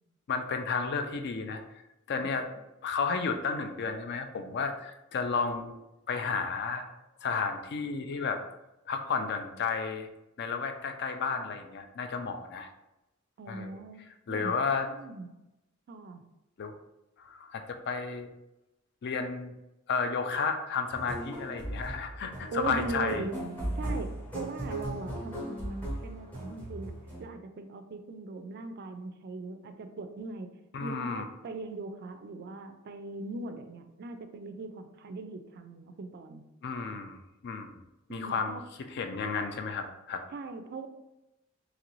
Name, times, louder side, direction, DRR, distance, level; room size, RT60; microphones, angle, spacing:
voice 1, 0.3-1.8 2.1-2.5 2.8-5.7 6.1-6.8 7.2-8.4 8.9-10.1 10.4-12.7 13.5-13.7 14.3-14.9 16.6-16.7 17.2-18.3 19.0-19.5 19.9-23.2 30.7-31.2 36.6-37.2 37.4-37.7 38.1-38.6 38.9-40.2, left 5 dB, 55° left, 7 dB, 0.3 m, -32 dB
voice 2, 13.4-14.0 14.3-15.3 15.9-16.3 22.5-23.4 23.8-26.9 27.2-30.5 30.8-36.4 38.1-38.6 40.3-40.9, right 3 dB, 50° right, 8 dB, 0.3 m, -40 dB
sound 1, 20.9-27.2, right 1 dB, 10° left, 0.8 m, -37 dB
3.0 x 2.5 x 3.0 m, 0.94 s
head